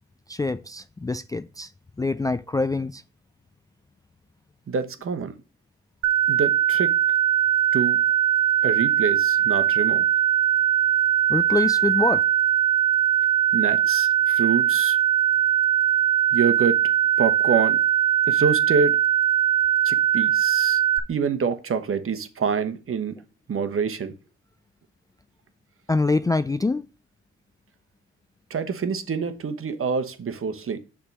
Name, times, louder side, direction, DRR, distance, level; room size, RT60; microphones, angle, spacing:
voice 1, 0.3-1.7 2.0-3.0 11.3-12.2 25.9-26.9, left 3 dB, 10° left, 0.4 m, -25 dB
voice 2, 4.7-5.3 6.3-7.0 7.7-8.0 8.6-10.1 13.5-15.0 16.3-16.8 17.2-17.8 18.3-19.0 19.8-20.8 21.1-23.2 23.5-24.1 28.5-30.8, right 6 dB, 45° right, 1.2 m, -26 dB
sound 1, 6.0-21.0, right 11 dB, 75° right, 0.7 m, -21 dB
6.6 x 3.7 x 6.0 m
supercardioid pair, 65°, 29 cm